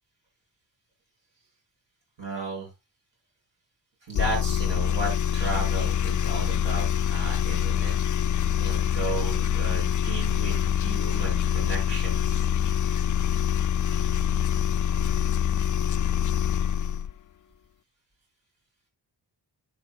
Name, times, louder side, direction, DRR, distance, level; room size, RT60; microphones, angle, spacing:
voice 1, 2.2-2.7 4.1-8.0 8.6-12.4, right 2 dB, 65° right, -2 dB, 6.9 m, -34 dB
sound 1, 4.1-17.1, left 9 dB, 45° left, 0.4 m, -25 dB
11.0 x 9.3 x 2.4 m, 0.21 s
cardioid pair, 50°, 46 cm